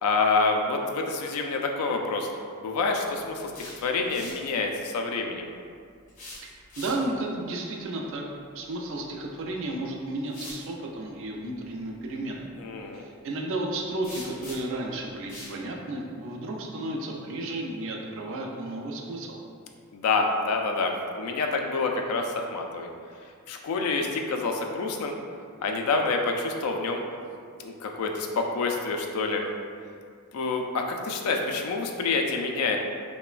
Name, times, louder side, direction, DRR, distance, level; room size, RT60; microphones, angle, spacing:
voice 1, 0.0-2.3 2.6-5.5 12.6-13.0 19.9-22.9 23.5-25.1 25.6-27.0 27.6-29.4 30.3-32.8, left 3 dB, 90° left, 4 dB, 0.3 m, -27 dB
sound 1, 3.5-4.5 6.1-7.3 9.3-9.5 10.2-10.7 14.0-14.8 15.3-15.6, left 2 dB, 35° left, 0.6 m, -43 dB
voice 2, 6.8-8.2 8.5-12.5 12.9-19.4, right 2 dB, 60° right, 0 dB, 0.3 m, -33 dB
3.0 x 2.1 x 2.3 m, 2.2 s
head